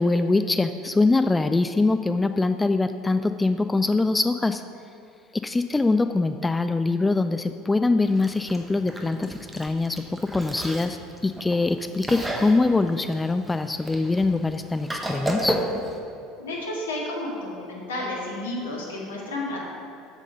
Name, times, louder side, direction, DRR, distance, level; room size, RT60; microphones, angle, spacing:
voice 1, 0.0-4.6 5.4-10.0 10.3-11.0 11.2-15.6, left 3 dB, 15° left, 9 dB, 0.3 m, -23 dB
Chewing mastication, 8.1-16.0, right 1 dB, 10° right, 1.1 m, -33 dB
voice 2, 16.4-19.6, left 1 dB, 80° left, -3 dB, 1.9 m, -31 dB
7.6 x 7.1 x 5.6 m, 2.8 s
figure-of-eight pair, 70°, 0 cm